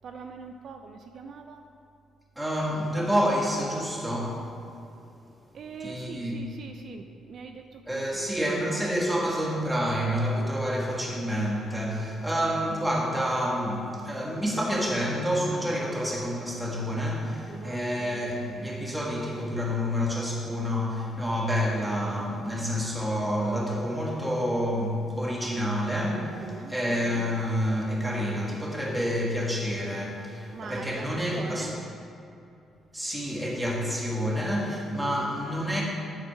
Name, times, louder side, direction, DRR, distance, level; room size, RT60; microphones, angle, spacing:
voice 1, 0.0-1.7 5.5-8.3 17.5-17.8 26.3-26.7 30.5-31.7 35.0-35.3, right 5 dB, 60° right, 5 dB, 0.4 m, -42 dB
voice 2, 2.3-4.4 5.8-6.4 7.9-31.7 32.9-35.8, equal, 10° right, -3 dB, 1.6 m, -28 dB
8.6 x 4.2 x 5.9 m, 2.7 s
cardioid pair, 90°, 0 cm